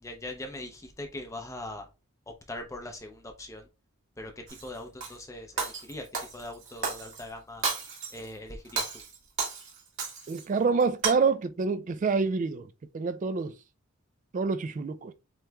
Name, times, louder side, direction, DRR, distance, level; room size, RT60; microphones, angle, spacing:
voice 1, 0.0-1.9 2.5-3.7 4.2-6.1 6.3-7.6 8.1-8.9, left 1 dB, 15° left, 0.6 m, -41 dB
Shatter, 4.5-5.1 5.6-7.2 7.6-8.3 8.6-10.4 10.8-11.1, right 4 dB, 60° right, 1.8 m, -33 dB
voice 2, 10.3-12.7 12.9-13.5 14.3-15.1, right 4 dB, 35° right, 0.3 m, -27 dB
7.7 x 3.0 x 2.3 m
head